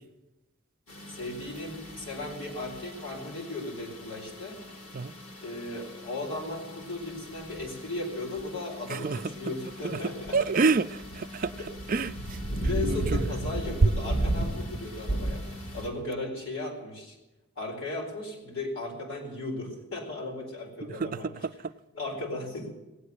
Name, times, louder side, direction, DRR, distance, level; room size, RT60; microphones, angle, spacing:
sound 1, 0.9-15.9, right 1 dB, 85° left, 3.1 m, -36 dB
voice 1, 1.1-4.6 5.4-10.4 11.6-11.7 12.6-15.4 15.7-17.2 17.6-21.3 21.9-22.7, left 2 dB, 65° left, 4.4 m, -36 dB
voice 2, 8.9-9.2 9.8-10.0 10.3-11.5 11.9-12.4 12.8-13.3 21.0-21.1, right 4 dB, 40° right, 0.5 m, -27 dB
17.5 x 8.6 x 8.2 m
head